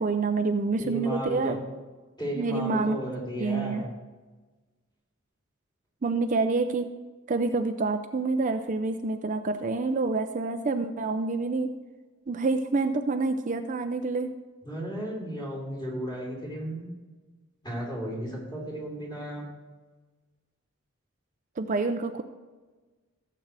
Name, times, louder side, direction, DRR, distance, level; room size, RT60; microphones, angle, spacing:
voice 1, 0.0-1.6 2.3-3.0 3.4-3.9 6.0-6.9 7.3-11.7 12.3-14.3 21.6-22.2, right 3 dB, 40° right, 7 dB, 0.5 m, -27 dB
voice 2, 0.8-1.6 2.2-3.9 14.6-16.9 17.6-19.4, equal, 20° left, -4 dB, 3.5 m, -34 dB
15.5 x 7.7 x 3.4 m, 1.3 s
head